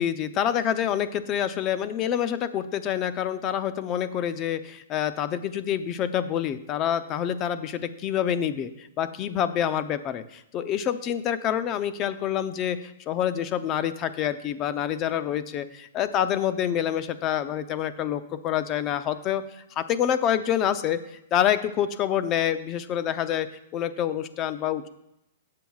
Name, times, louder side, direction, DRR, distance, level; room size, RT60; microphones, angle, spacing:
voice 1, 0.0-21.0 21.3-23.5 23.7-24.9, left 10 dB, 30° left, 11 dB, 0.7 m, -27 dB
17.0 x 7.7 x 2.4 m, 0.81 s
hypercardioid pair, 135°, 0 cm